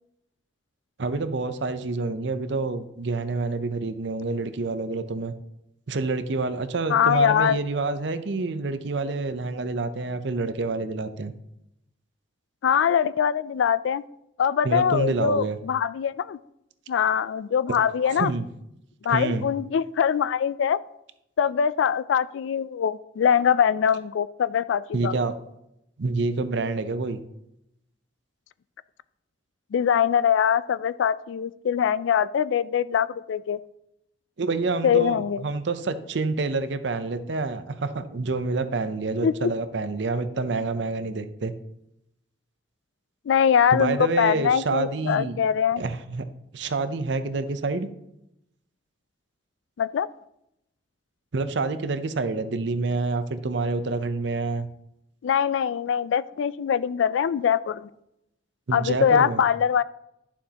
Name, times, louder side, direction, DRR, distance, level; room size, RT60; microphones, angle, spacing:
voice 1, 1.0-5.3 5.9-11.3 14.6-15.6 18.1-18.5 19.1-19.5 24.9-25.3 26.0-27.2 34.4-41.5 43.7-45.4 45.8-46.3 46.5-47.9 51.3-54.7 58.7-59.4, right 3 dB, 65° right, 11 dB, 0.6 m, -27 dB
voice 2, 6.9-7.6 12.6-14.0 14.4-16.4 16.9-18.3 19.0-20.8 21.4-25.1 29.7-33.6 34.8-35.4 39.2-39.5 43.3-45.8 49.8-50.1 55.2-57.9 58.7-59.8, left 8 dB, 70° left, 18 dB, 0.3 m, -23 dB
11.0 x 7.1 x 2.9 m, 0.83 s
head